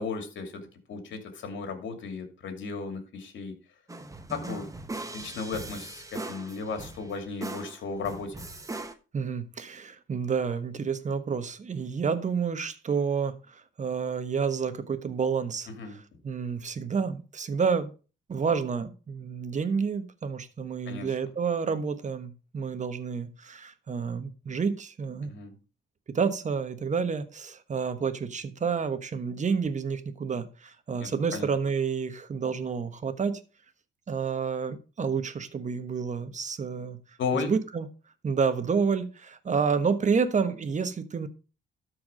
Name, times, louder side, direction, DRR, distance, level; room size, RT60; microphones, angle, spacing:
voice 1, 0.0-3.5 4.3-4.7 5.1-8.5 15.8-16.0 20.9-21.1 25.2-25.6 31.0-31.5 37.2-37.5, left 4 dB, 70° left, 2.7 m, -35 dB
sound 1, 3.9-8.9, right 2 dB, 15° right, 1.2 m, -39 dB
voice 2, 9.1-15.7 16.2-17.9 18.3-25.3 26.1-33.4 34.1-37.0 37.3-37.9 38.2-41.3, right 6 dB, 40° right, 1.3 m, -29 dB
13.0 x 4.8 x 5.0 m
cardioid pair, 90°, 20 cm